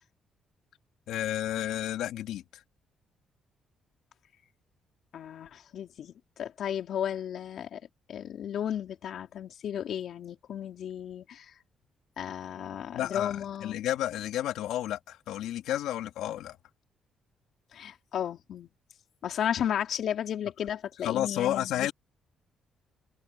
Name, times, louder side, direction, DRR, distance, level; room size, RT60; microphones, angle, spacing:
voice 1, 1.1-2.4 12.9-16.6 21.0-21.9, left 12 dB, 85° left, 2.8 m, -31 dB
voice 2, 5.1-7.8 8.1-11.5 12.2-13.8 17.7-18.7 19.2-21.9, left 9 dB, 70° left, 3.4 m, -34 dB
cardioid pair, 90°, 0 cm